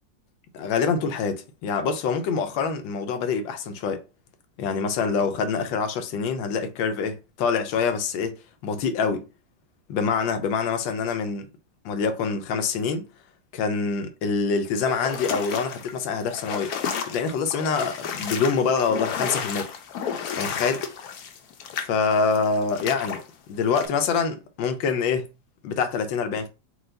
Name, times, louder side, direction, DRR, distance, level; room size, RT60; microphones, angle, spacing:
voice 1, 0.5-4.0 4.6-9.3 9.9-11.5 11.8-13.1 13.5-16.7 17.1-19.7 20.3-20.8 21.7-23.2 23.5-25.3 25.6-26.5, left 5 dB, 80° left, 1.4 m, -25 dB
sound 1, 14.9-23.2 23.8-23.9, left 7 dB, 65° left, 1.0 m, -32 dB
4.5 x 2.4 x 3.8 m
omnidirectional pair, 2.0 m